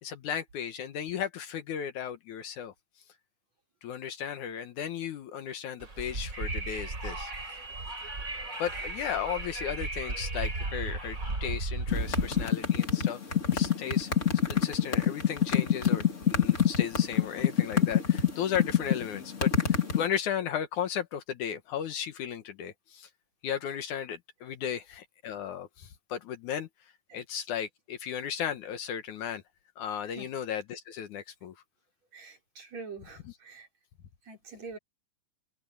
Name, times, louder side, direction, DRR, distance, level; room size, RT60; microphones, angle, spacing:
voice 1, 0.0-2.7 3.8-7.3 8.6-14.1 14.5-23.1 23.4-26.7 27.1-29.4 29.8-31.5, left 9 dB, 70° left, 2.5 m, -35 dB
Wind, 5.8-12.5, right 2 dB, 25° right, 3.7 m, -35 dB
sound 1, 11.9-20.0, left 8 dB, 25° left, 2.1 m, -25 dB
voice 2, 32.1-33.7 34.2-34.8, right 4 dB, 50° right, 6.1 m, -45 dB
omnidirectional pair, 3.9 m